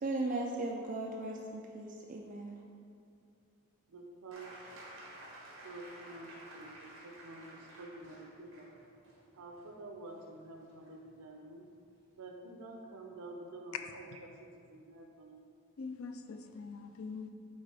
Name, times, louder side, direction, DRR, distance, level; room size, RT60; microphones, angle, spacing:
voice 1, 0.0-2.5, right 2 dB, 35° right, -1 dB, 0.3 m, -37 dB
voice 2, 3.9-4.5 5.6-8.7 9.4-11.6 12.2-14.3 14.7-15.4, right 2 dB, 80° right, 2 dB, 0.6 m, -49 dB
sound 1, 4.3-11.8 13.0-13.1, right 1 dB, 55° right, 1.4 m, -53 dB
voice 3, 13.7-14.2 15.8-17.3, left 5 dB, 65° left, 7 dB, 0.4 m, -43 dB
8.6 x 3.7 x 3.4 m, 2.5 s
head